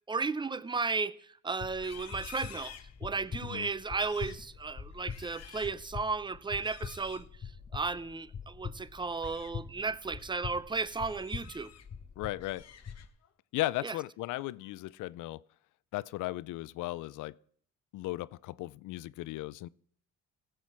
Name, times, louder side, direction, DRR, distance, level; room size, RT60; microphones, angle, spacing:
voice 1, 0.1-2.7 3.0-7.3 7.7-11.7 13.8-13.9, right 4 dB, 15° right, 0.6 m, -34 dB
sound 1, 1.6-13.0, left 6 dB, 35° left, 1.0 m, -44 dB
Livestock farm animals working animals, 1.7-3.4 3.8-4.5 4.9-5.8 6.6-7.3 8.9-9.5 10.0-10.2 10.7-11.9 12.2-13.3 13.7-14.0 14.4-14.9, left 9 dB, 55° left, 1.2 m, -52 dB
voice 2, 12.2-12.7 13.5-15.4 15.9-17.4 17.9-19.7, left 17 dB, 85° left, 0.5 m, -36 dB
17.0 x 7.8 x 4.7 m
cardioid pair, 90°, 30 cm